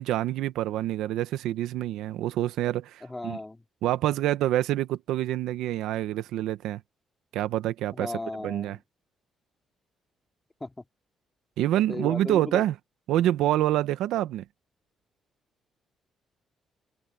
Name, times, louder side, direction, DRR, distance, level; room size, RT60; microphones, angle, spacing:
voice 1, 0.0-3.4 3.8-6.8 7.3-8.1 8.4-8.8 11.6-12.7 13.1-14.4, right 13 dB, 90° right, 1.0 m, -27 dB
voice 2, 3.0-3.6 7.9-8.8 10.6-10.8 11.9-12.6, left 2 dB, 15° left, 2.8 m, -36 dB
cardioid pair, 90°, 0 cm